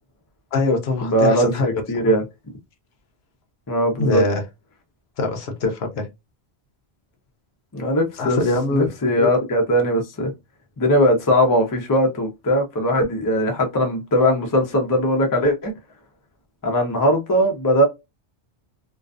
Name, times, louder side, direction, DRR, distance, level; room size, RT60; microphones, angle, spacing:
voice 1, 0.5-2.1 4.0-4.4 5.2-6.1 8.2-9.3, left 2 dB, 70° left, 0.9 m, -23 dB
voice 2, 1.0-2.2 3.7-4.2 7.7-8.4 8.7-10.3 10.8-15.7 16.6-17.8, equal, 25° left, 0.4 m, -19 dB
2.4 x 2.3 x 2.4 m
omnidirectional pair, 1.2 m